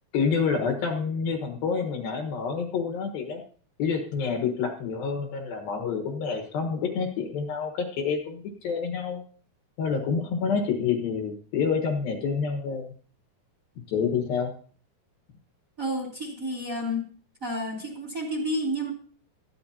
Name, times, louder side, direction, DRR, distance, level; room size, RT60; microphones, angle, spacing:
voice 1, 0.1-3.4 3.8-9.2 9.8-12.9 13.9-14.5, left 5 dB, 65° left, 4 dB, 2.9 m, -28 dB
voice 2, 15.8-17.1 17.4-18.9, equal, 20° right, 1 dB, 2.9 m, -30 dB
18.5 x 14.0 x 2.8 m, 0.43 s
omnidirectional pair, 5.0 m